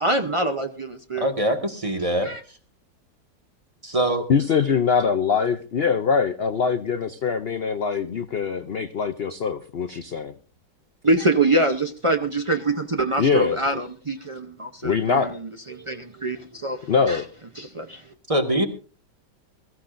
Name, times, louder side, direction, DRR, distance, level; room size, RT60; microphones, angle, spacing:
voice 1, 0.0-1.3 2.2-2.4 11.0-17.2 17.5-18.1, right 2 dB, 50° right, 5 dB, 0.3 m, -25 dB
voice 2, 1.2-2.3 3.8-4.3 18.3-18.7, right 1 dB, 20° right, 5 dB, 1.5 m, -23 dB
voice 3, 4.3-10.3 13.2-13.6 14.8-15.4 16.9-17.2, left 6 dB, 60° left, 9 dB, 0.6 m, -23 dB
22.0 x 14.5 x 2.6 m, 0.39 s
omnidirectional pair, 1.9 m